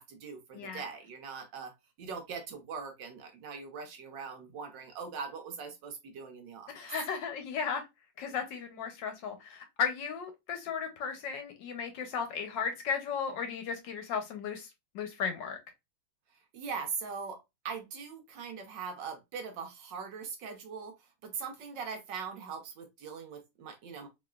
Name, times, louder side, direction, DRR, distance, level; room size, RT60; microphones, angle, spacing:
voice 1, 0.0-1.7 2.0-6.9 16.5-17.4 17.6-24.1, right 5 dB, 65° right, 1.3 m, -41 dB
voice 2, 6.7-7.8 8.2-14.7 14.9-15.6, left 6 dB, 70° left, 1.2 m, -35 dB
3.9 x 3.1 x 2.3 m
omnidirectional pair, 2.3 m